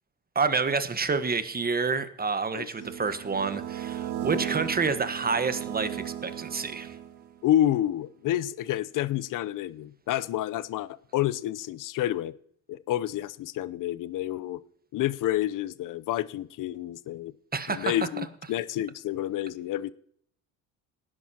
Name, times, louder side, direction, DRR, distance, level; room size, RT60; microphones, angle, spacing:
voice 1, 0.3-7.0 17.5-17.9, right 4 dB, 25° right, 1.4 m, -28 dB
sound 1, 2.8-7.4, right 11 dB, 70° right, 1.2 m, -36 dB
voice 2, 7.4-12.3 12.7-14.6 14.9-17.3 17.7-19.9, left 13 dB, 50° left, 0.7 m, -29 dB
18.5 x 10.5 x 2.9 m
hypercardioid pair, 70°, 40 cm